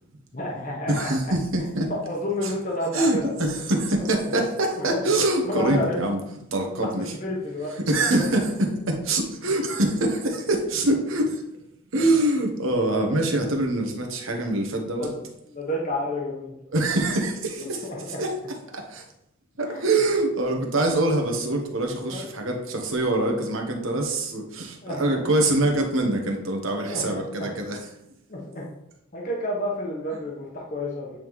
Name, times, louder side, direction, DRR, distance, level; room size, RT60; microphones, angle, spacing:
voice 1, 0.3-1.3 1.9-3.5 4.7-5.0 5.5-6.0 6.8-8.2 11.9-12.0 15.0-15.1 15.5-16.6 17.6-18.2 19.7-19.9 22.1-22.3 24.8-25.2 26.9-27.5 28.3-28.7 29.1-31.2, left 1 dB, 40° left, -3 dB, 1.0 m, -30 dB
voice 2, 0.9-1.9 2.4-2.5 2.9-6.2 6.5-7.0 7.9-11.4 11.9-15.1 16.7-17.8 18.2-18.3 18.7-19.0 19.6-27.8, right 2 dB, 70° right, 2 dB, 1.1 m, -24 dB
8.6 x 3.6 x 3.1 m, 0.82 s
head